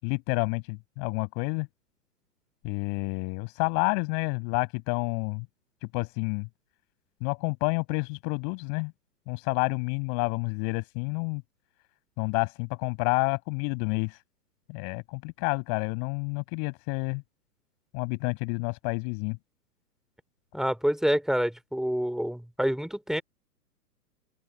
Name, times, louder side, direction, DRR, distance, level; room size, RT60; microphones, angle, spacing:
voice 1, 0.0-1.7 2.6-5.5 5.9-6.5 7.2-8.9 9.3-11.4 12.2-14.2 14.7-17.2 17.9-19.4, left 40 dB or more, 35° left, 7.0 m, -29 dB
voice 2, 20.5-23.2, equal, ahead, 2.9 m, -27 dB
open air
figure-of-eight pair, 120°, 48 cm